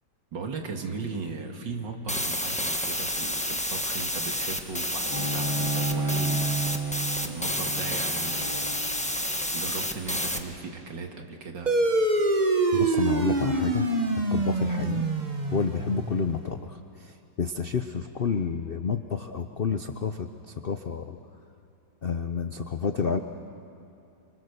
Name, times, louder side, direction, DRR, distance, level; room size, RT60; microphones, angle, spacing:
voice 1, 0.3-6.6 7.2-8.8 9.5-11.8, right 4 dB, 70° right, 3 dB, 2.6 m, -37 dB
sound 1, 2.1-10.4, left 1 dB, 5° left, 0.9 m, -30 dB
Bowed string instrument, 5.1-10.4, right 2 dB, 60° left, 3.3 m, -32 dB
sound 2, 11.7-16.5, right 2 dB, 25° right, 1.2 m, -25 dB
voice 2, 12.7-13.9 14.3-15.1 15.5-21.2 22.0-23.2, left 5 dB, 80° left, 8 dB, 0.5 m, -30 dB
26.5 x 26.5 x 6.7 m, 2.7 s
omnidirectional pair, 2.1 m